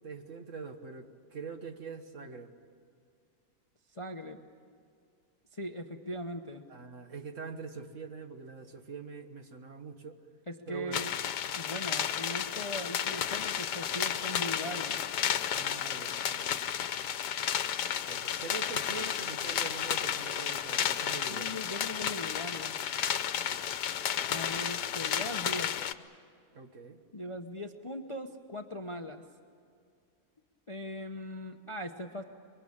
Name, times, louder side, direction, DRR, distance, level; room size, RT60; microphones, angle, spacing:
voice 1, 0.0-2.5 6.7-10.2 10.7-11.0 15.5-16.6 18.1-21.6 23.5-23.8 26.5-27.0, right 5 dB, 50° right, 6 dB, 1.7 m, -44 dB
voice 2, 3.9-4.4 5.5-6.6 10.5-11.1 11.5-15.0 21.3-22.8 24.3-25.8 27.1-29.2 30.7-32.2, left 1 dB, 25° left, 6 dB, 0.8 m, -40 dB
sound 1, 10.9-25.9, left 9 dB, 85° left, 1.4 m, -32 dB
25.0 x 23.0 x 8.7 m, 2.3 s
omnidirectional pair, 1.8 m